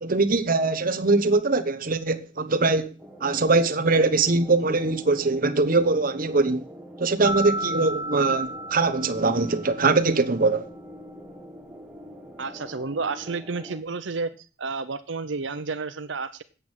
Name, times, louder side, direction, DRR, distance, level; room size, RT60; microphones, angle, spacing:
voice 1, 0.0-2.9 3.2-6.7 7.0-10.7, right 3 dB, 50° right, 1.0 m, -22 dB
sound 1, 3.0-13.8, equal, 5° right, 1.6 m, -44 dB
sound 2, 7.2-10.0, equal, 75° left, 4.1 m, -33 dB
voice 2, 12.4-14.3 14.6-16.4, right 4 dB, 90° right, 0.8 m, -31 dB
8.4 x 8.1 x 7.3 m
head